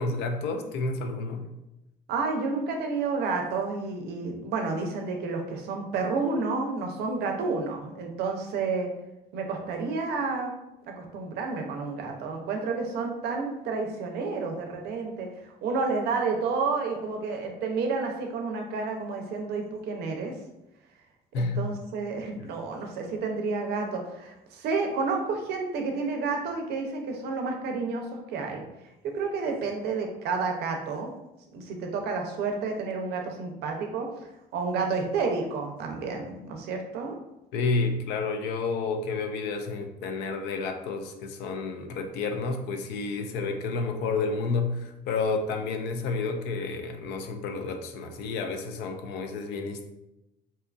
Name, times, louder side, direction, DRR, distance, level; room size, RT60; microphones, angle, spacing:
voice 1, 0.0-1.5 21.3-21.7 37.5-49.9, left 3 dB, 90° left, 6 dB, 0.4 m, -30 dB
voice 2, 2.1-8.9 9.3-10.5 10.9-20.3 21.4-28.6 29.0-31.1 31.5-34.1 34.5-37.2, right 4 dB, 75° right, 3 dB, 0.5 m, -30 dB
2.7 x 2.4 x 2.2 m, 0.91 s
cardioid pair, 110°, 17 cm